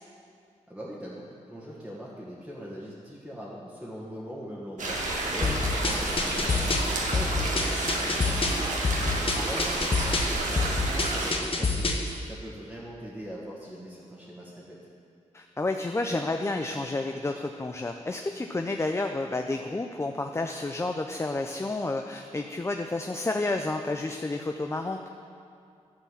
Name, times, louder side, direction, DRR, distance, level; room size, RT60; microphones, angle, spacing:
voice 1, 0.7-5.0 5.3-5.5 5.8-8.6 9.3-12.0 12.2-14.8, equal, 5° right, -7 dB, 1.7 m, -41 dB
sound 1, 4.8-11.3, right 2 dB, 80° right, 1.5 m, -30 dB
sound 2, 5.4-12.1, left 3 dB, 45° left, 1.1 m, -28 dB
voice 2, 15.3-25.0, left 2 dB, 20° left, 4 dB, 0.5 m, -30 dB
11.5 x 4.5 x 7.3 m, 2.5 s
cardioid pair, 65°, 13 cm